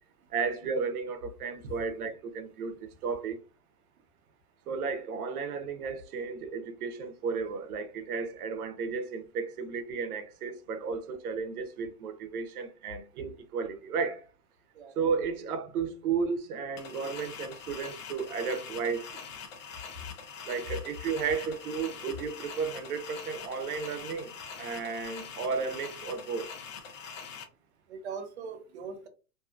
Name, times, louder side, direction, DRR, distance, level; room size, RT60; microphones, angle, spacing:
voice 1, 0.3-3.4 4.7-14.3 15.0-19.2 20.5-24.3 24.6-26.5, right 5 dB, 85° right, 0.7 m, -33 dB
voice 2, 14.7-15.1 20.7-20.8 27.9-29.1, right 3 dB, 50° right, 0.6 m, -41 dB
sound 1, 16.8-27.4, left 6 dB, 60° left, 0.7 m, -44 dB
2.7 x 2.4 x 2.4 m
supercardioid pair, 180°, 44 cm